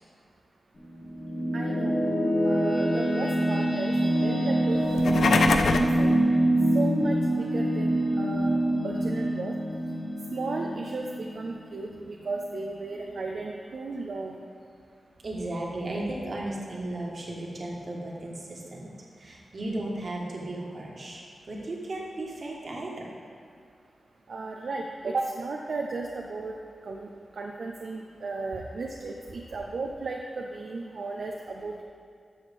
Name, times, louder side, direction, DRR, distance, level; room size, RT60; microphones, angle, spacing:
sound 1, 0.8-12.1, right 1 dB, 45° left, 2.2 m, -25 dB
voice 1, 1.5-2.0 2.4-4.9 5.1-6.1 6.7-9.5 10.3-14.4 24.3-26.5 26.8-31.8, right 3 dB, 65° right, 0 dB, 0.6 m, -35 dB
sound 2, 4.8-6.0, left 4 dB, 80° left, 0.5 m, -24 dB
voice 2, 15.2-18.9 19.2-23.1, right 1 dB, 50° right, -2 dB, 1.6 m, -35 dB
13.0 x 6.3 x 3.6 m, 2.3 s
wide cardioid pair, 125°, 0 cm